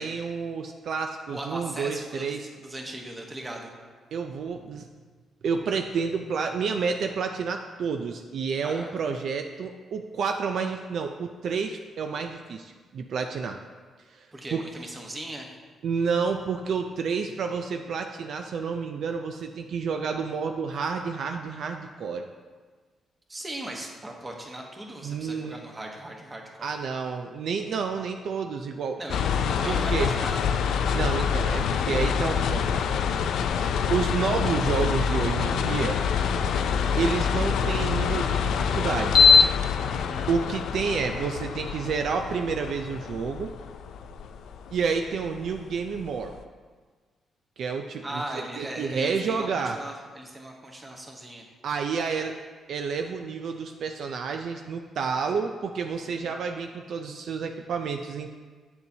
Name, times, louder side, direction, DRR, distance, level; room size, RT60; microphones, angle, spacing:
voice 1, 0.0-2.5 4.1-4.9 5.4-13.6 14.1-14.6 15.8-22.3 25.0-25.6 26.6-29.0 29.6-30.1 30.9-32.7 33.9-36.0 37.0-39.2 40.0-43.5 44.7-46.3 47.6-49.8 51.6-52.4 52.7-58.3, right 5 dB, 65° right, 5 dB, 0.4 m, -29 dB
voice 2, 1.3-3.7 8.6-8.9 14.3-15.5 23.3-26.7 29.0-30.7 39.9-40.3 48.0-51.4 56.2-56.3, right 1 dB, 20° right, 1 dB, 1.1 m, -38 dB
sound 1, 29.1-46.3, left 6 dB, 80° left, 0.4 m, -25 dB
8.3 x 6.8 x 2.8 m, 1.5 s
cardioid pair, 110°, 0 cm